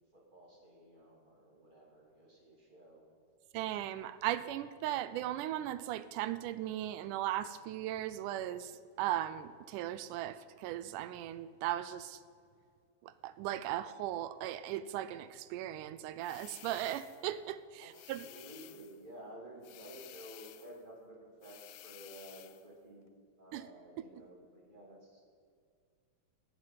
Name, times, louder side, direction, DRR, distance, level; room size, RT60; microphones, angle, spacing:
voice 1, 0.1-3.0 17.8-23.1 23.4-25.3, right 1 dB, 15° right, -2 dB, 2.6 m, -53 dB
voice 2, 3.5-12.2 13.0-18.3 23.5-23.7, right 13 dB, 80° right, 14 dB, 1.9 m, -37 dB
sound 1, 16.2-17.3 17.9-19.0 19.6-20.8 21.4-22.7, left 15 dB, 80° left, 1.8 m, -54 dB
16.0 x 7.8 x 9.3 m, 2.2 s
omnidirectional pair, 4.0 m